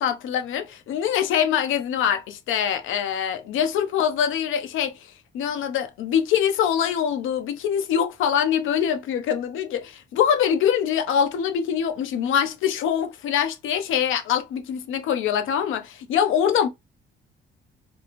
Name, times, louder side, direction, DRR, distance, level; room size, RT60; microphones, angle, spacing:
voice 1, 0.0-4.9 5.3-16.7, left 8 dB, 80° left, 0.7 m, -24 dB
3.7 x 2.6 x 2.9 m
cardioid pair, 90°, 20 cm